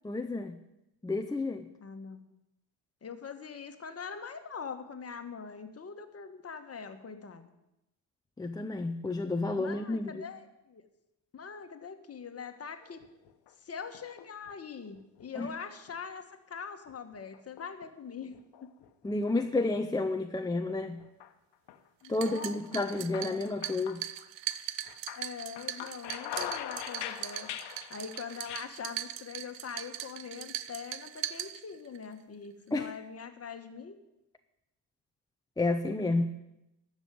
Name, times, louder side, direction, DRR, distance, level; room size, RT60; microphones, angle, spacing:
voice 1, 0.0-0.6 1.0-1.7 8.4-10.2 15.4-15.5 19.0-21.0 22.1-24.0 32.7-32.9 35.6-36.4, left 2 dB, 10° left, 5 dB, 0.6 m, -31 dB
voice 2, 1.8-2.2 3.0-7.5 9.5-10.8 11.3-13.0 13.6-18.7 22.0-23.5 25.1-27.5 27.9-34.0, left 6 dB, 30° left, 7 dB, 1.5 m, -43 dB
sound 1, 12.8-13.5 13.9-14.6 14.9-15.5 15.9-16.0 16.9-17.9 18.3-19.3 19.8-19.9 20.8-21.3 21.7-21.9 22.2-24.6 24.8-28.7, left 11 dB, 55° left, 1.2 m, -43 dB
sound 2, 22.0-32.0, right 14 dB, 60° right, 0.8 m, -40 dB
12.5 x 6.4 x 9.3 m, 0.91 s
supercardioid pair, 90°, 50 cm